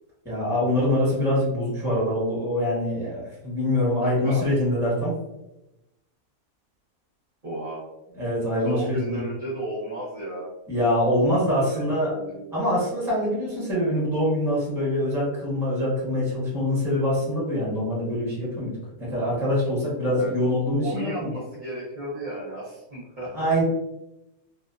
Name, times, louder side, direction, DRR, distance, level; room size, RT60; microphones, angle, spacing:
voice 1, 0.2-5.1 8.2-9.2 10.7-12.1 12.5-18.7 19.0-21.3 23.3-23.6, left 1 dB, ahead, -7 dB, 0.7 m, -24 dB
voice 2, 4.0-4.4 7.4-7.8 8.6-10.5 11.6-11.8 12.1-12.9 20.1-20.3 20.8-23.3, right 1 dB, 40° right, -8 dB, 0.7 m, -34 dB
2.6 x 2.1 x 2.3 m, 0.95 s
omnidirectional pair, 1.7 m